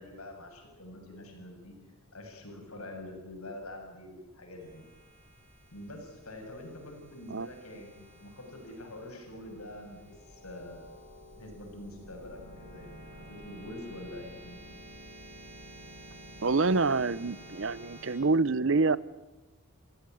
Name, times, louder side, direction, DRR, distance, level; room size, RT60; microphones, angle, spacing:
voice 1, 0.0-1.7 2.1-4.8 5.7-10.9 11.3-14.6, left 1 dB, 90° left, 2 dB, 7.4 m, -45 dB
sound 1, 4.6-18.1, equal, 80° right, 7.2 m, -51 dB
voice 2, 16.4-19.0, right 3 dB, 60° right, 20 dB, 0.7 m, -26 dB
28.5 x 16.0 x 9.3 m, 1.1 s
head